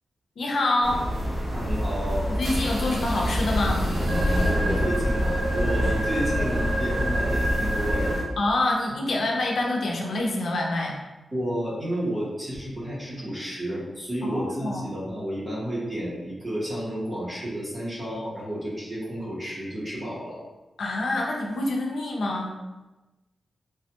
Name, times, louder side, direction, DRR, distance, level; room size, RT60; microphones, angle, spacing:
voice 1, 0.4-1.0 2.3-3.9 8.4-11.0 14.2-14.9 20.8-22.6, left 2 dB, 70° left, -1 dB, 0.5 m, -26 dB
sound 1, 0.8-8.2, equal, 55° right, 0.8 m, -25 dB
voice 2, 1.5-2.3 4.5-8.1 10.7-10.8 11.3-20.4, equal, 20° right, -7 dB, 0.7 m, -31 dB
3.3 x 2.1 x 2.8 m, 1.1 s
wide cardioid pair, 170°, 0 cm